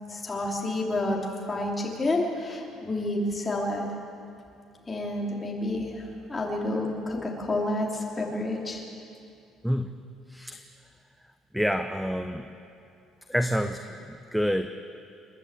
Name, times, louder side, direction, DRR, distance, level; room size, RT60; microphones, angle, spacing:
voice 1, 0.1-1.2 1.5-4.0 4.9-8.8, left 2 dB, 15° left, -2 dB, 3.1 m, -29 dB
voice 2, 10.3-10.6 11.5-12.5 13.3-14.7, equal, ahead, 7 dB, 0.6 m, -28 dB
29.5 x 11.0 x 8.3 m, 2.5 s
cardioid pair, 165°, 0 cm